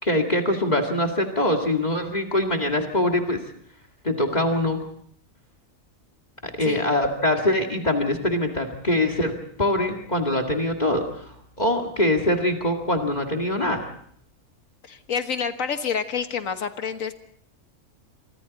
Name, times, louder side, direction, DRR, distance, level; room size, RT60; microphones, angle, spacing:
voice 1, 0.0-3.4 4.0-4.9 6.4-13.9, left 1 dB, 30° left, 6 dB, 2.3 m, -23 dB
voice 2, 14.8-17.1, left 6 dB, 65° left, 8 dB, 1.8 m, -28 dB
27.0 x 24.5 x 4.1 m, 0.62 s
omnidirectional pair, 1.5 m